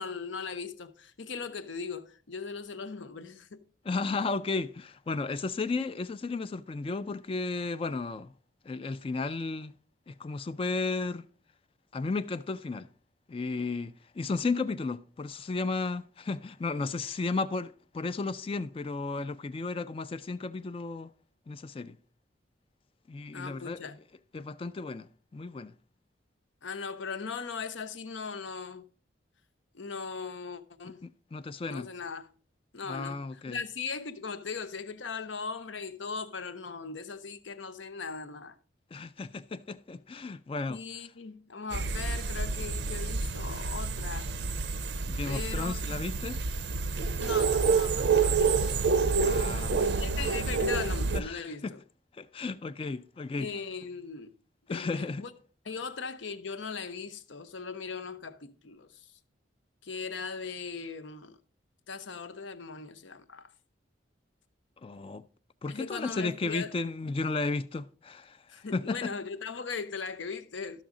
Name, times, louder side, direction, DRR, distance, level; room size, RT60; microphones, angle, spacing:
voice 1, 0.0-3.6 23.3-24.0 26.6-28.9 29.7-31.0 31.7-32.3 32.7-38.6 40.7-44.3 45.3-45.8 47.1-48.8 50.0-51.8 53.4-54.3 54.7-55.3 55.6-59.1 59.8-61.4 61.9-63.5 65.7-66.7 68.5-70.8, left 5 dB, 80° left, 0.7 m, -39 dB
voice 2, 3.9-8.3 8.7-9.7 10.1-11.2 11.9-12.9 13.3-21.1 21.5-21.9 23.1-23.8 24.3-25.7 31.0-31.9 32.9-33.6 38.9-40.8 45.1-46.4 49.2-50.0 50.4-50.5 51.1-51.7 52.2-53.5 54.7-55.2 64.8-65.2 65.6-68.4 68.7-69.1, left 3 dB, 30° left, 0.3 m, -34 dB
sound 1, 41.7-51.2, right 4 dB, 60° right, 0.5 m, -28 dB
12.5 x 6.2 x 3.7 m
head